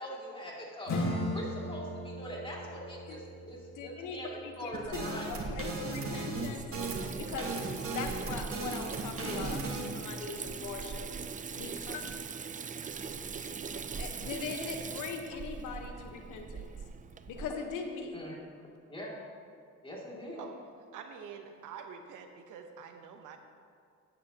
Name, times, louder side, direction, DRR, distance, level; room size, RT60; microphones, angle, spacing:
voice 1, 0.0-5.3 9.2-9.5 18.1-18.4 18.9-19.1 19.8-20.4, equal, 15° left, -4 dB, 2.5 m, -42 dB
Acoustic guitar / Strum, 0.9-6.1, left 1 dB, 65° left, 1.7 m, -38 dB
voice 2, 3.7-6.6 7.2-7.5 7.9-9.6 9.9-11.1 11.6-12.0 14.0-16.7 17.3-18.2, left 5 dB, 90° left, 4 dB, 1.2 m, -40 dB
sound 1, 4.7-9.8, right 3 dB, 45° right, 1.5 m, -37 dB
Water tap faucet / Sink (filling or washing), 4.8-17.5, right 5 dB, 25° right, 0.4 m, -41 dB
voice 3, 20.9-23.4, right 6 dB, 85° right, 6 dB, 1.0 m, -46 dB
12.5 x 8.6 x 2.9 m, 2.3 s
cardioid pair, 90°, 30 cm